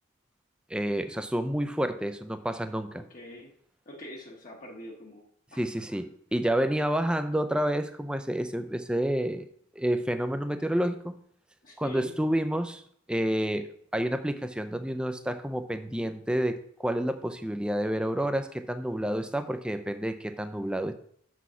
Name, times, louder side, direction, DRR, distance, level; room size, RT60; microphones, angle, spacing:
voice 1, 0.7-3.0 5.6-9.5 9.8-11.2 11.8-12.8 13.1-20.9, right 1 dB, 5° right, 0.4 m, -29 dB
voice 2, 2.9-3.5 3.9-5.6 5.9-6.0 11.6-12.1, equal, 40° left, 1.1 m, -44 dB
6.2 x 6.1 x 5.6 m
head